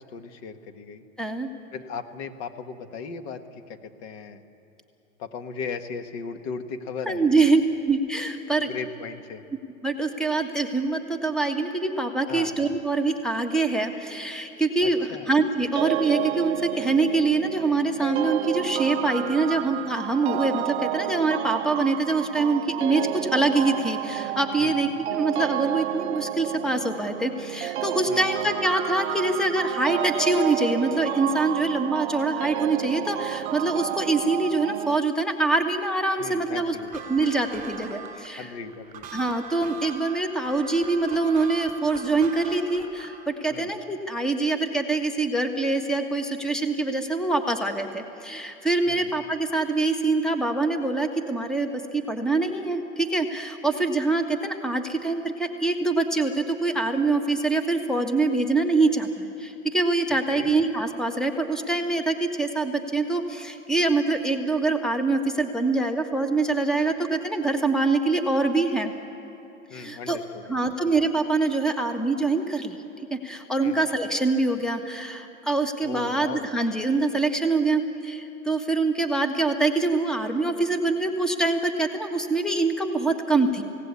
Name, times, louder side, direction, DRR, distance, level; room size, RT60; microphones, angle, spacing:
voice 1, 0.0-1.0 1.7-4.4 5.2-7.5 8.6-9.4 12.3-12.5 14.8-15.3 24.6-24.8 28.1-28.3 36.2-36.9 38.4-39.1 43.5-43.7 48.9-49.1 60.3-60.5 69.7-70.9 73.6-73.8 75.8-76.5, left 5 dB, 50° left, 7 dB, 1.7 m, -37 dB
voice 2, 1.2-1.5 7.1-8.7 9.8-36.7 37.1-38.5 39.1-68.9 69.7-70.2 70.5-72.8 73.1-83.6, right 3 dB, ahead, 7 dB, 1.5 m, -24 dB
sound 1, 15.8-35.0, right 15 dB, 55° right, 0.5 m, -31 dB
sound 2, 36.8-43.3, right 6 dB, 20° right, 4.6 m, -40 dB
27.5 x 17.5 x 8.5 m, 2.9 s
hypercardioid pair, 110°, 41 cm